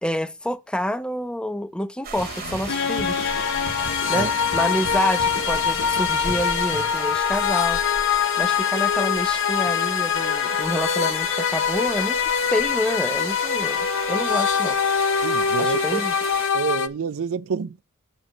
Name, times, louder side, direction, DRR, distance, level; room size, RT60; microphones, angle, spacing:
voice 1, 0.0-3.3 4.1-7.8 8.4-14.8 15.6-16.1, left 1 dB, 5° left, 0.5 m, -28 dB
sound 1, 2.0-16.5, right 5 dB, 45° right, 1.2 m, -35 dB
sound 2, 2.2-7.2, left 3 dB, 85° left, 1.2 m, -36 dB
sound 3, 2.7-16.9, left 7 dB, 55° left, 0.6 m, -23 dB
voice 2, 15.2-16.1 16.5-17.8, right 6 dB, 65° right, 0.4 m, -28 dB
7.3 x 4.5 x 6.5 m
head